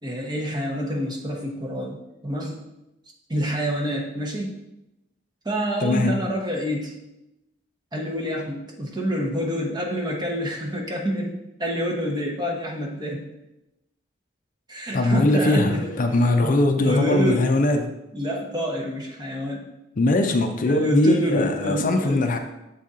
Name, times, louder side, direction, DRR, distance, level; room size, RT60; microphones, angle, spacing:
voice 1, 0.0-2.0 2.2-2.7 3.3-4.5 5.4-6.9 7.9-13.3 14.7-15.9 16.4-17.5 18.1-19.7 20.6-22.4, equal, 20° right, -1 dB, 1.0 m, -27 dB
voice 2, 5.8-6.2 14.9-17.9 20.0-22.4, left 2 dB, 45° left, 6 dB, 0.4 m, -21 dB
7.2 x 4.1 x 3.7 m, 0.92 s
head